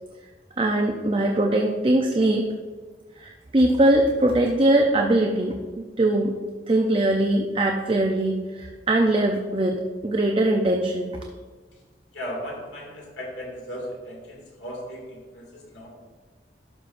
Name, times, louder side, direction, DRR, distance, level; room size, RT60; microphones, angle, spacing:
voice 1, 0.6-2.5 3.2-6.3 6.7-11.2, right 1 dB, 30° right, 2 dB, 0.5 m, -21 dB
voice 2, 12.1-15.9, equal, 85° left, -2 dB, 2.2 m, -36 dB
11.5 x 5.9 x 2.5 m, 1.4 s
head